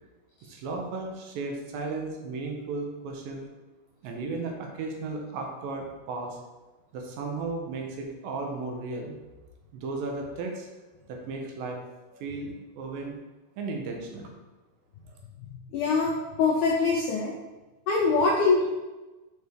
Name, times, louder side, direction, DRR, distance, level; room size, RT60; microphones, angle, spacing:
voice 1, 0.5-3.5 4.0-6.4 6.9-9.1 9.7-10.7 11.1-11.9 12.2-13.1 13.6-14.3, right 3 dB, 75° right, 1 dB, 2.4 m, -35 dB
voice 2, 15.7-16.1 16.4-17.3 17.9-18.6, left 4 dB, 80° left, -3 dB, 1.8 m, -23 dB
6.3 x 4.8 x 3.4 m, 1.1 s
omnidirectional pair, 4.3 m